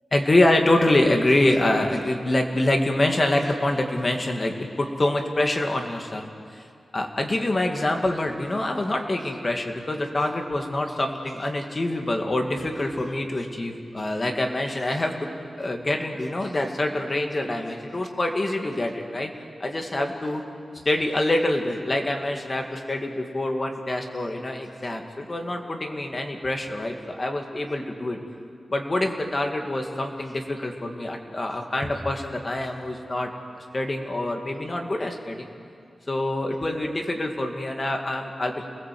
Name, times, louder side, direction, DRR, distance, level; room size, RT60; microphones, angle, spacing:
voice 1, 0.1-6.3 6.9-15.3 15.6-19.3 19.6-20.4 20.8-28.2 28.7-33.3 33.7-35.5 36.1-38.7, left 1 dB, 30° left, 3 dB, 2.2 m, -25 dB
28.5 x 20.0 x 7.8 m, 2.4 s
wide cardioid pair, 135°, 0 cm